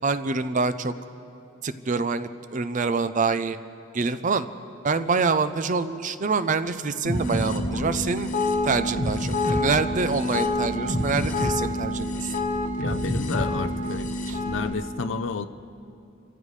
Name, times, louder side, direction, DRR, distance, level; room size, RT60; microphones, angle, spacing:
voice 1, 0.0-0.9 1.6-3.6 3.9-4.5 4.8-8.3 8.6-12.3 14.3-14.4, right 4 dB, 40° right, 12 dB, 0.5 m, -26 dB
sound 1, 7.0-14.7, left 1 dB, 40° left, 1.2 m, -27 dB
voice 2, 12.8-14.1 14.5-15.5, left 4 dB, 65° left, 12 dB, 0.5 m, -31 dB
28.5 x 15.0 x 3.3 m, 2.7 s
head